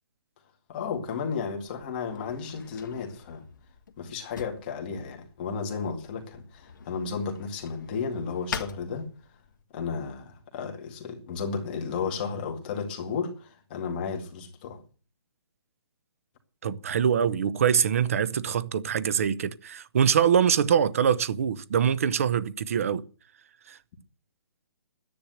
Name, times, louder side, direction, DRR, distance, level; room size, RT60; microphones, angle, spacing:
voice 1, 0.7-3.4 4.0-9.1 9.7-14.8, left 5 dB, 20° left, 2.1 m, -33 dB
Drawer open or close, 0.9-9.6, left 6 dB, 45° left, 1.7 m, -44 dB
voice 2, 16.6-23.0 23.7-23.8, right 8 dB, 35° right, 0.8 m, -24 dB
12.5 x 10.5 x 8.0 m
hypercardioid pair, 175°, 14 cm